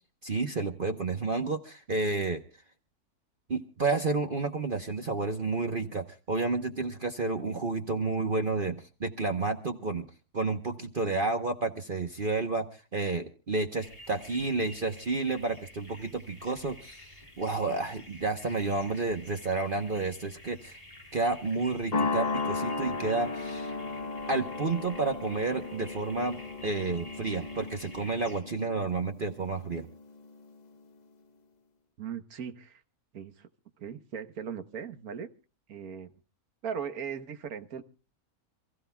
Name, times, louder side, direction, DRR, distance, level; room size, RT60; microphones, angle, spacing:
voice 1, 0.2-2.4 3.5-10.1 10.3-17.1 17.4-20.8 21.1-23.7 24.3-29.9, right 3 dB, 40° right, 6 dB, 1.2 m, -30 dB
sound 1, 13.8-28.4, left 1 dB, 25° left, 4.7 m, -50 dB
sound 2, 21.9-30.4, left 3 dB, 40° left, 0.7 m, -35 dB
voice 2, 32.0-32.8 33.1-33.5 33.8-35.3 35.7-36.1 36.6-37.8, right 7 dB, 70° right, 10 dB, 1.6 m, -38 dB
28.0 x 15.0 x 2.3 m, 0.34 s
omnidirectional pair, 1.6 m